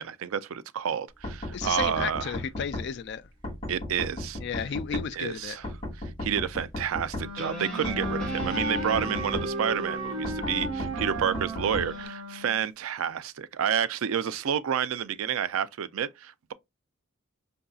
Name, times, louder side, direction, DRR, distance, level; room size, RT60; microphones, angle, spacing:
voice 1, 0.0-2.3 3.7-4.4 5.1-5.7 6.0-16.5, right 8 dB, 70° right, 0.4 m, -30 dB
sound 1, 1.2-2.9 3.4-5.1 5.6-7.3 7.8-9.5 10.2-11.9, left 1 dB, 25° left, 2.0 m, -34 dB
voice 2, 1.5-3.3 4.4-5.6, left 7 dB, 50° left, 0.3 m, -33 dB
Wind instrument woodwind instrument, 7.1-12.7, right 2 dB, 90° right, 0.8 m, -35 dB
Guitar, 7.3-12.1, left 2 dB, 5° left, 1.9 m, -38 dB
5.6 x 2.6 x 2.3 m
head